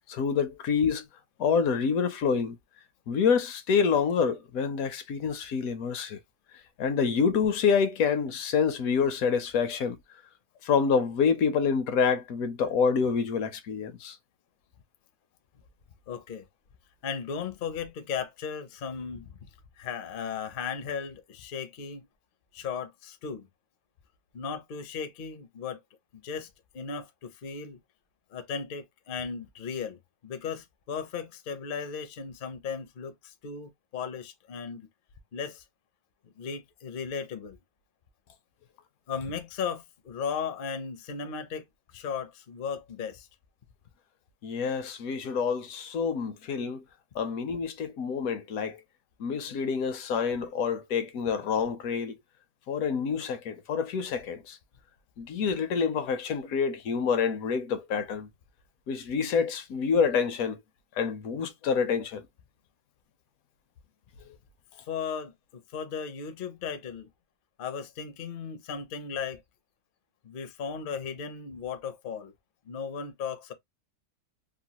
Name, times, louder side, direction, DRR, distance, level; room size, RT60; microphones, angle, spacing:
voice 1, 0.1-1.0 1.4-2.6 3.1-6.2 6.8-10.0 10.6-14.2 44.4-46.8 47.1-48.8 49.2-52.1 52.7-54.6 55.2-58.3 58.9-60.6 61.0-62.2, left 6 dB, 75° left, 1.0 m, -27 dB
voice 2, 16.1-16.5 17.0-19.5 19.8-22.1 22.5-23.5 24.3-25.8 26.1-27.8 28.3-34.9 35.3-35.6 36.2-37.6 39.1-41.6 41.9-43.3 64.9-67.1 67.6-69.4 70.2-72.3 72.7-73.5, left 6 dB, 55° left, 0.6 m, -36 dB
3.0 x 2.3 x 2.8 m
omnidirectional pair, 1.6 m